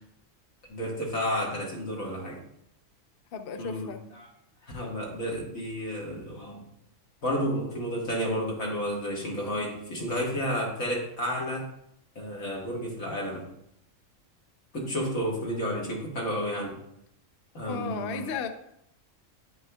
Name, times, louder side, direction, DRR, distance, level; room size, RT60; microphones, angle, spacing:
voice 1, 0.7-2.4 3.6-3.9 4.6-6.6 7.2-11.7 12.2-13.5 14.7-16.8 17.5-18.3, equal, 80° left, -2 dB, 2.0 m, -31 dB
voice 2, 3.3-4.0 17.7-18.5, left 6 dB, 60° left, 7 dB, 0.6 m, -34 dB
10.0 x 5.5 x 2.2 m, 0.76 s
omnidirectional pair, 1.4 m